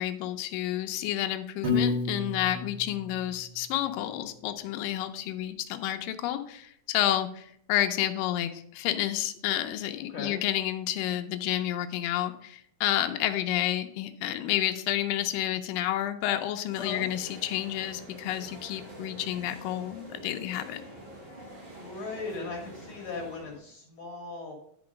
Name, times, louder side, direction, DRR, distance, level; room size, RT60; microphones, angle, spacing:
voice 1, 0.0-20.8, left 13 dB, 80° left, 6 dB, 2.3 m, -30 dB
Piano, 1.6-3.8, left 4 dB, 40° right, 1.7 m, -31 dB
voice 2, 10.1-10.4 16.8-17.1 21.6-24.5, left 3 dB, 60° left, 1 dB, 2.1 m, -38 dB
sound 1, 16.7-23.6, right 1 dB, 70° right, 4.3 m, -46 dB
10.5 x 4.8 x 5.1 m, 0.66 s
omnidirectional pair, 4.2 m